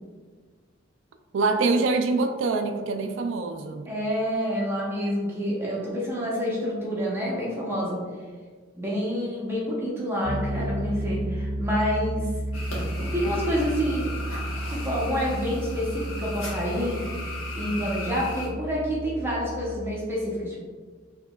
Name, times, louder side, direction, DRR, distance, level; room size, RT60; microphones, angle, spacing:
voice 1, 1.3-3.9, right 3 dB, 65° right, 7 dB, 0.3 m, -25 dB
voice 2, 3.9-8.0 8.8-12.3 13.1-14.2 14.7-17.0 17.5-20.6, equal, 10° right, -6 dB, 0.7 m, -28 dB
Piano, 10.2-19.8, right 1 dB, 40° left, 0.6 m, -32 dB
sound 1, 12.5-18.5, left 2 dB, 85° left, 1.0 m, -37 dB
4.5 x 2.9 x 2.3 m, 1.5 s
head